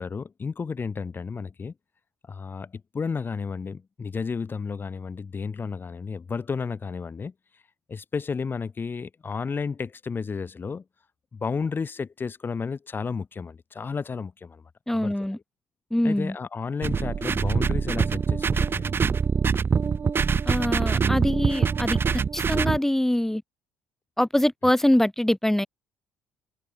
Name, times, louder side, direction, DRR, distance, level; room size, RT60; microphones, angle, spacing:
voice 1, 0.0-1.7 2.3-7.3 7.9-10.8 11.3-14.6 14.9-15.4 16.0-18.8, left 5 dB, 35° left, 3.4 m, -32 dB
voice 2, 14.9-15.4 15.9-16.4 20.4-23.4 24.2-25.7, left 1 dB, 5° left, 5.3 m, -24 dB
sound 1, 16.8-22.8, right 6 dB, 40° right, 2.7 m, -24 dB
hypercardioid pair, 60°, 6 cm